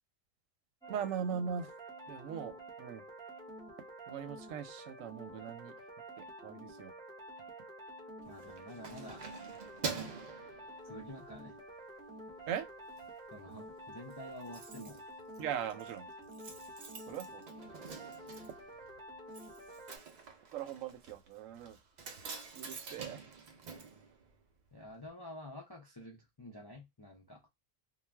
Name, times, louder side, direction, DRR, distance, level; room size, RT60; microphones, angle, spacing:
sound 1, 0.8-20.0, right 1 dB, 5° left, 0.6 m, -49 dB
voice 1, 0.9-1.7 2.1-3.0 4.1-5.7 6.2-6.9 12.5-12.7 15.4-16.1 17.1-17.4 20.5-21.8 22.5-23.2, right 8 dB, 85° right, 1.0 m, -40 dB
voice 2, 8.2-9.3 10.9-11.6 13.3-15.0 24.7-27.4, left 1 dB, 40° left, 0.3 m, -49 dB
Keys jangling, 8.2-11.3 11.8-12.0 12.4-13.1 13.3-13.4 13.7-13.8 13.9-24.8 25.0-25.1, right 5 dB, 60° right, 0.4 m, -47 dB
2.4 x 2.2 x 3.1 m
omnidirectional pair, 1.3 m